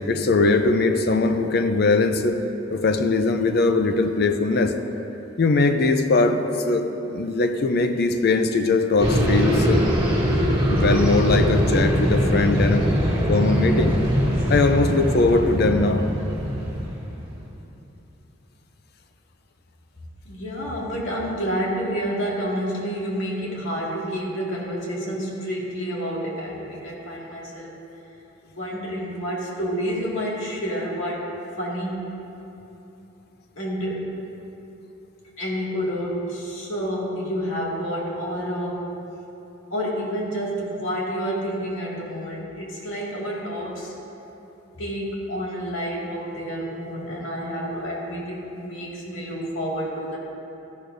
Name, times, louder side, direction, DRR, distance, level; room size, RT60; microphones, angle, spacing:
voice 1, 0.0-2.4 2.7-4.8 5.4-9.8 10.7-12.9 13.3-14.0 14.5-16.1, left 3 dB, 50° left, 7 dB, 0.5 m, -20 dB
sound 1, 9.0-17.3, equal, 25° right, 2.0 m, -22 dB
voice 2, 20.3-27.8 28.4-32.2 33.6-34.3 35.4-38.9 39.7-43.9 44.8-50.2, equal, 80° left, -4 dB, 2.1 m, -29 dB
13.0 x 11.5 x 2.6 m, 3.0 s
head